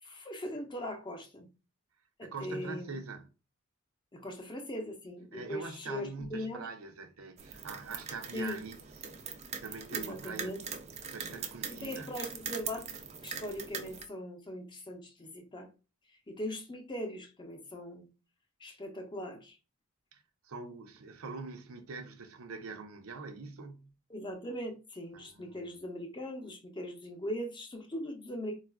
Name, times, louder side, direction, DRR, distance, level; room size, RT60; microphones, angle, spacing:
voice 1, 0.0-1.5 2.2-3.0 4.1-6.7 8.3-8.6 9.9-10.6 11.2-12.9 13.2-15.7 16.3-18.1 18.6-19.6 24.1-28.6, left 1 dB, 20° left, 0.6 m, -40 dB
voice 2, 2.2-3.3 5.3-8.8 9.3-10.5 11.1-12.1 20.1-23.9 25.1-25.6, right 4 dB, 90° right, 0.6 m, -44 dB
sound 1, 7.4-14.0, right 6 dB, 30° right, 0.4 m, -42 dB
3.9 x 2.4 x 2.2 m
head